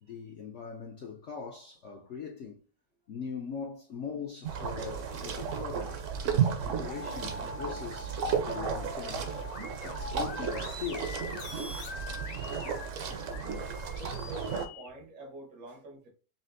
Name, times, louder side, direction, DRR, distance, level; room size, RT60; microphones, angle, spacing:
voice 1, 0.0-2.6 3.1-6.0 6.4-9.5 9.8-11.5, left 6 dB, 70° left, 0.7 m, -41 dB
sound 1, 4.4-14.7, right 7 dB, 60° right, 0.9 m, -34 dB
sound 2, 6.5-14.9, left 3 dB, 90° left, 1.4 m, -44 dB
voice 2, 13.9-16.1, right 1 dB, 85° right, 1.8 m, -46 dB
5.3 x 2.5 x 2.5 m
omnidirectional pair, 1.8 m